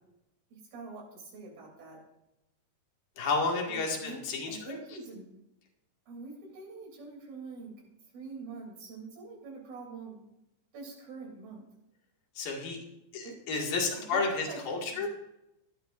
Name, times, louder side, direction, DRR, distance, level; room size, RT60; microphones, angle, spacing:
voice 1, 0.5-2.0 3.7-4.2 4.5-5.3 6.1-7.8 8.1-10.2 10.7-11.7 13.2-13.3 13.9-14.6 14.9-15.1, right 4 dB, 85° right, -1 dB, 5.0 m, -45 dB
voice 2, 3.2-4.8 12.4-12.8 13.1-15.1, left 4 dB, 80° left, 0 dB, 3.9 m, -31 dB
18.0 x 12.5 x 2.6 m, 0.87 s
omnidirectional pair, 4.1 m